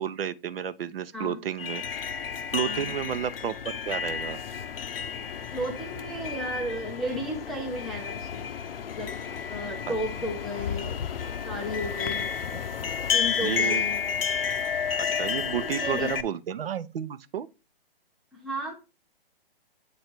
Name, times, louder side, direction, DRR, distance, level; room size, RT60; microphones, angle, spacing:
voice 1, 0.0-2.1 2.5-4.4 9.9-10.0 12.5-12.6 13.4-13.8 15.2-17.5, right 9 dB, 70° right, 0.7 m, -31 dB
sound 1, 1.6-16.2, left 7 dB, 70° left, 0.7 m, -31 dB
voice 2, 5.5-8.5 9.0-9.2 9.5-11.0 11.4-12.3 13.1-14.0 15.5-16.1 18.3-18.7, equal, ahead, 0.4 m, -33 dB
8.1 x 3.2 x 4.3 m
hypercardioid pair, 140°, 30 cm